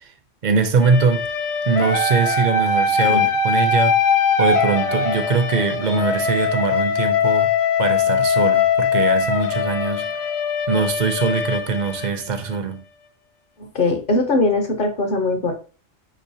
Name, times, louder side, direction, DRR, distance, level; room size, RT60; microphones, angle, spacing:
voice 1, 0.4-1.3 1.7-4.0 4.4-7.5 7.8-10.1 10.7-12.8, right 5 dB, 55° right, 0.5 m, -22 dB
sound 1, 0.8-12.6, left 5 dB, 75° left, 1.1 m, -21 dB
voice 2, 13.6-15.5, left 2 dB, 50° left, 0.8 m, -20 dB
5.0 x 3.0 x 2.6 m
omnidirectional pair, 1.3 m